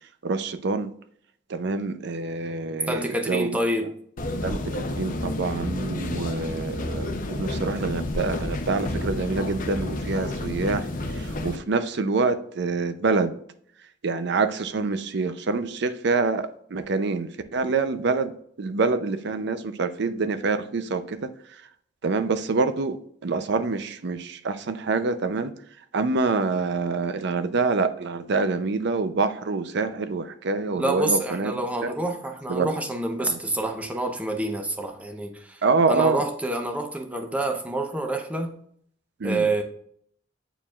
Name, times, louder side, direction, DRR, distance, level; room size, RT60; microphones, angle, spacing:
voice 1, 0.2-0.9 1.5-3.6 4.4-13.3 14.0-21.3 22.0-25.5 25.9-31.5 31.8-31.9 32.5-32.8 33.2-33.4 35.6-36.2 39.2-39.5, right 4 dB, 65° right, 0.5 m, -26 dB
voice 2, 2.9-3.9 30.8-35.6 35.9-38.6 39.2-39.6, right 1 dB, 10° right, 0.7 m, -27 dB
sound 1, 4.2-11.6, left 1 dB, 45° left, 0.7 m, -30 dB
8.9 x 4.5 x 2.4 m
head